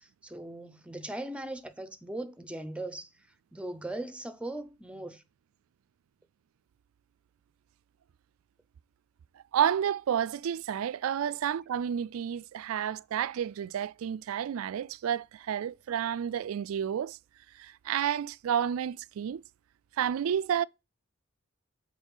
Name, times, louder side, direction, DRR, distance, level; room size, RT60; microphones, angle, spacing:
voice 1, 0.0-3.1 3.5-5.2, right 1 dB, 5° right, 0.6 m, -39 dB
voice 2, 9.5-17.2 17.6-19.4 20.0-20.6, right 9 dB, 75° right, 0.3 m, -30 dB
7.2 x 4.4 x 5.4 m
head